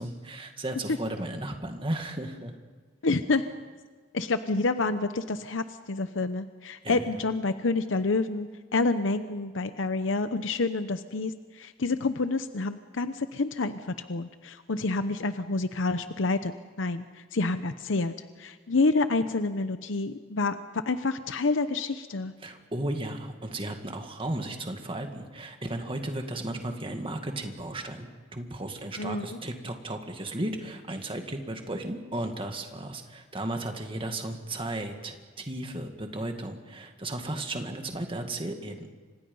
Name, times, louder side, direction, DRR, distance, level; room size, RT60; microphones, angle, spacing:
voice 1, 0.0-2.5 6.8-7.0 22.4-38.9, right 1 dB, 25° right, 5 dB, 2.1 m, -35 dB
voice 2, 3.0-3.4 4.1-13.8 14.1-17.0 17.3-20.6 20.9-22.3 29.0-29.4, left 3 dB, 75° left, 10 dB, 0.8 m, -28 dB
30.0 x 26.0 x 5.5 m, 1.4 s
head